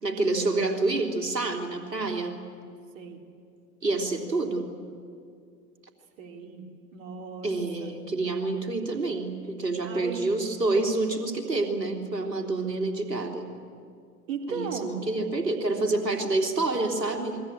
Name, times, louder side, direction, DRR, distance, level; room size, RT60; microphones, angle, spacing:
voice 1, 0.0-2.4 3.8-4.7 7.4-13.5 14.5-17.4, right 2 dB, 80° right, 3 dB, 3.6 m, -28 dB
voice 2, 6.2-7.5 7.8-8.0 9.8-10.3 14.3-14.9, right 5 dB, 50° right, 3 dB, 4.1 m, -36 dB
28.0 x 22.5 x 8.8 m, 2.3 s
figure-of-eight pair, 95°, 49 cm